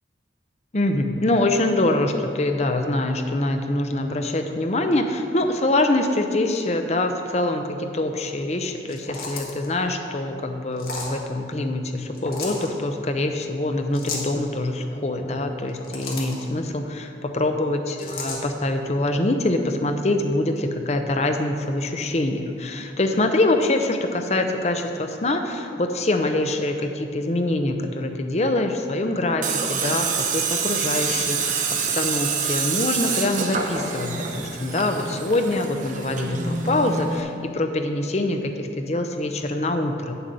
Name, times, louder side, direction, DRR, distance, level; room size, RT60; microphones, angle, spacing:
voice 1, 0.7-31.6 31.9-40.2, left 2 dB, 35° left, 6 dB, 0.6 m, -24 dB
sound 1, 8.8-9.7 10.8-11.2 12.1-12.7 13.9-14.3 15.6-16.4 18.0-18.4, left 3 dB, 55° left, 1.5 m, -33 dB
Tools, 29.4-37.2, right 5 dB, 45° right, 0.8 m, -26 dB
9.1 x 7.1 x 5.3 m, 2.7 s
head